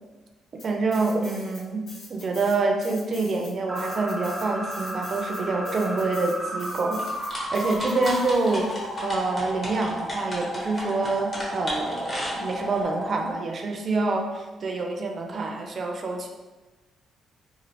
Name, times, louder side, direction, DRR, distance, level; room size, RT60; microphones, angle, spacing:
sound 1, 0.6-1.6 1.9-8.7, left 2 dB, 90° left, 1.2 m, -45 dB
voice 1, 0.6-7.0 7.5-8.7 9.0-16.3, right 3 dB, 45° right, 2 dB, 0.4 m, -27 dB
sound 2, 3.7-13.3, equal, ahead, 0.6 m, -33 dB
sound 3, 7.0-12.8, equal, 35° left, 1.0 m, -35 dB
3.1 x 2.4 x 2.7 m, 1.2 s
cardioid pair, 90°, 0 cm